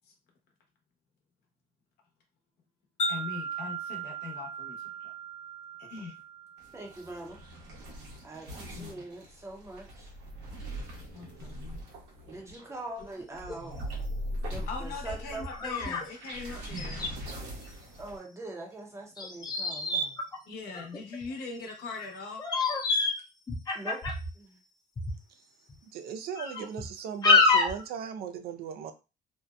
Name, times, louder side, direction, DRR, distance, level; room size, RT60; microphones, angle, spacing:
Wind chime, 3.0-7.3, right 3 dB, 45° left, 1.1 m, -37 dB
voice 1, 3.1-5.1 5.8-6.2 8.8-9.0 11.1-11.8 14.4-17.2 20.5-22.4, left 4 dB, 70° left, 0.9 m, -41 dB
sound 1, 6.6-18.2, equal, 85° right, 0.9 m, -41 dB
voice 2, 6.7-7.4 8.2-10.1 12.2-14.1 14.5-15.8 18.0-20.2 23.7-24.1 24.3-24.6, right 2 dB, 15° right, 0.6 m, -43 dB
sound 2, 12.7-12.8 13.4-13.6 14.1-14.2 15.1-16.1 16.4-16.5 16.6-17.1 19.2-21.3 22.0-22.1 22.4-23.2 23.5-24.3 25.0-25.2 25.7-25.8 26.4-26.9 27.2-27.8, left 3 dB, 25° left, 0.6 m, -27 dB
voice 3, 25.8-28.9, right 8 dB, 65° right, 0.4 m, -37 dB
2.7 x 2.1 x 2.3 m
cardioid pair, 110°, 17 cm